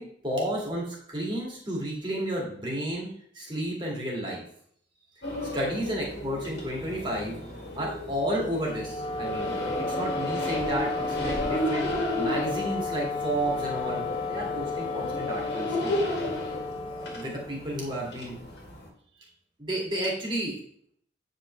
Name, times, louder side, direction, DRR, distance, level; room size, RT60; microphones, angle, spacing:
voice 1, 0.0-4.4 5.5-7.4 7.7-14.0 14.3-16.0 16.8-18.4 19.2-19.3 19.6-20.6, right 1 dB, 25° right, -2 dB, 2.0 m, -32 dB
sound 1, 5.2-18.9, left 1 dB, 75° left, 1.6 m, -33 dB
Wind instrument woodwind instrument, 8.6-17.9, left 4 dB, 30° left, 0.5 m, -33 dB
8.7 x 5.3 x 3.2 m, 0.64 s
head